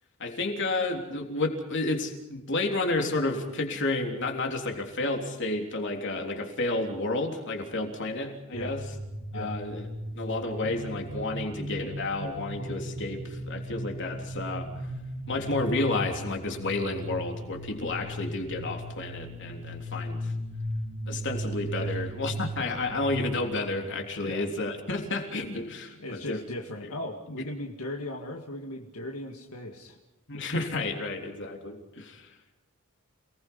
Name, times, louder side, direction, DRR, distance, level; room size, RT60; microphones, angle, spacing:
voice 1, 0.2-8.8 9.3-9.9 10.1-14.7 15.3-20.3 21.1-26.4 27.4-27.5 30.3-32.3, left 2 dB, 55° left, 2 dB, 3.4 m, -31 dB
sound 1, 8.5-24.4, equal, 75° right, 3.1 m, -37 dB
voice 2, 26.0-30.0, left 1 dB, 85° left, 2 dB, 2.1 m, -37 dB
29.0 x 19.5 x 5.5 m, 1.0 s
head